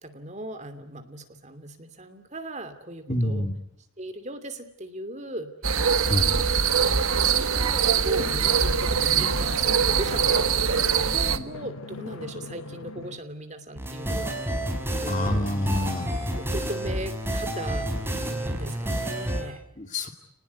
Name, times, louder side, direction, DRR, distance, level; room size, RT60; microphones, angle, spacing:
voice 1, 0.0-3.5 4.0-5.5 6.3-6.5 7.2-10.4 11.0-14.7 14.9-15.5 16.4-17.9 18.2-19.6, right 1 dB, 35° right, 8 dB, 2.8 m, -38 dB
voice 2, 3.1-3.5 6.0-6.4 9.2-9.3 15.1-16.1 19.8-20.1, left 1 dB, 35° left, 6 dB, 2.3 m, -27 dB
sound 1, 5.6-11.4, right 7 dB, 85° right, 1.5 m, -23 dB
Drum, 8.2-13.2, left 3 dB, 75° left, 1.8 m, -39 dB
sound 2, 13.8-19.4, right 1 dB, 10° right, 5.7 m, -29 dB
30.0 x 20.0 x 9.7 m, 0.77 s
head